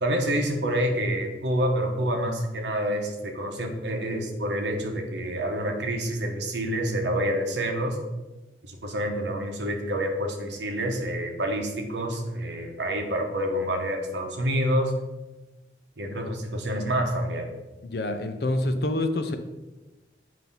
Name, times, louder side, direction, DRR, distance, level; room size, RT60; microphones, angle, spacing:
voice 1, 0.0-8.0 8.6-14.9 16.0-17.5, equal, 75° right, 3 dB, 1.0 m, -27 dB
voice 2, 17.8-19.4, left 1 dB, 60° left, 7 dB, 0.6 m, -27 dB
7.8 x 2.8 x 5.4 m, 1.1 s
head